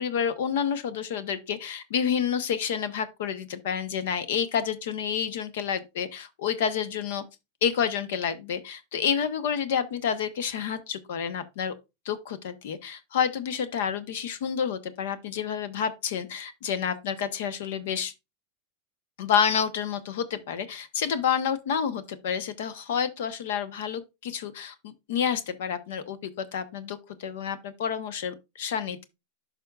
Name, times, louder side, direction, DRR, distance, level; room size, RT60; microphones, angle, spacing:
voice 1, 0.0-7.2 7.6-11.7 12.0-18.1 19.2-29.0, left 7 dB, 75° left, 0.9 m, -29 dB
11.0 x 5.1 x 2.4 m
hypercardioid pair, 115°, 0 cm